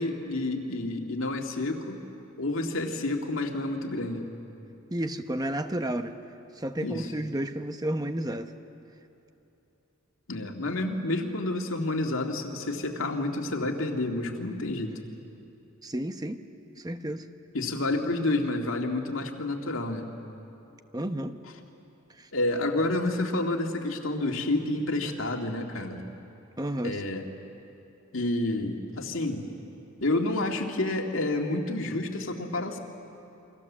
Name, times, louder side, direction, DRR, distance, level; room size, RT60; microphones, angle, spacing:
voice 1, 0.0-2.0 2.4-4.3 6.8-7.1 10.3-14.9 17.5-20.1 22.3-26.0 26.8-27.2 28.1-29.5 30.0-32.8, left 2 dB, 75° left, 2 dB, 2.3 m, -29 dB
voice 2, 4.9-6.1 6.6-8.5 15.8-16.4 16.8-17.3 20.9-21.4 22.1-22.3 26.6-27.0, right 1 dB, 20° right, 8 dB, 0.9 m, -31 dB
28.5 x 24.0 x 7.4 m, 2.9 s
head